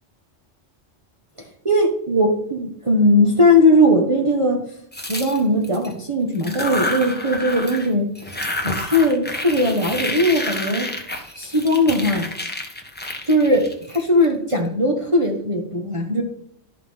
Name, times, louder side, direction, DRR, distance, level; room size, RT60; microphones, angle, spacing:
voice 1, 1.6-4.6 5.1-8.1 8.6-10.9 11.4-12.3 13.2-16.2, left 1 dB, 25° right, -1 dB, 1.4 m, -19 dB
sound 1, 4.9-5.9 6.3-7.9 8.1-14.5, left 1 dB, 10° left, 1.3 m, -29 dB
12.0 x 5.9 x 5.6 m, 0.69 s
omnidirectional pair, 1.2 m